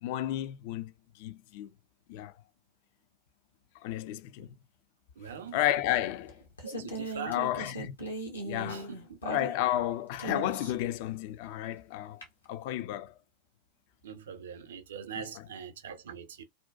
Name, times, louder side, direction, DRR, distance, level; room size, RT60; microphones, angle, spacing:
voice 1, 0.0-1.7 2.1-2.3 3.8-4.5 5.5-6.4 6.7-6.9 7.3-7.9 8.4-8.9 9.2-12.2 12.5-13.1 15.1-15.5, left 13 dB, 45° left, 0.4 m, -32 dB
voice 2, 5.2-5.6 6.6-7.4 8.7-9.2 14.0-16.4, right 7 dB, 60° right, 0.5 m, -42 dB
sound 1, 5.9-9.8 10.2-10.9 12.2-12.3, right 1 dB, 75° left, 0.9 m, -38 dB
2.6 x 2.2 x 2.3 m
figure-of-eight pair, 90°, 0 cm